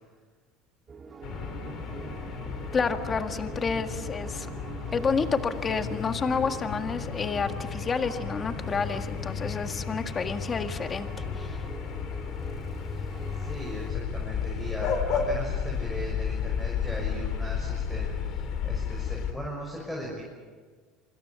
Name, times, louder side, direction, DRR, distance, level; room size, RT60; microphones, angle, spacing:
sound 1, 0.9-13.9, right 4 dB, 25° right, 2.3 m, -45 dB
sound 2, 1.2-19.3, left 6 dB, 50° left, 2.9 m, -33 dB
sound 3, 1.3-11.3, right 8 dB, 60° right, 5.4 m, -49 dB
voice 1, 2.7-4.5 4.9-11.1 11.4-11.6, left 5 dB, 25° left, 7 dB, 1.8 m, -29 dB
voice 2, 13.3-20.2, equal, 5° left, -2 dB, 6.3 m, -38 dB
27.0 x 25.5 x 7.0 m, 1.5 s
supercardioid pair, 130°, 0 cm